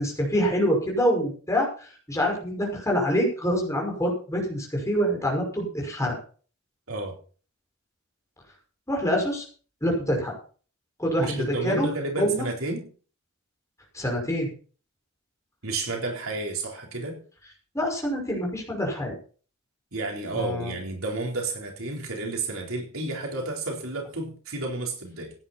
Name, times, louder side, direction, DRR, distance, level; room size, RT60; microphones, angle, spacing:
voice 1, 0.0-6.1 8.9-9.4 9.8-10.3 11.0-11.9 12.2-12.5 13.9-14.5 17.7-19.2 20.3-20.7, equal, 15° left, 0 dB, 5.5 m, -26 dB
voice 2, 11.2-12.8 15.6-17.2 19.9-25.3, right 2 dB, 70° right, 1 dB, 4.1 m, -31 dB
16.0 x 10.0 x 4.3 m, 0.40 s
head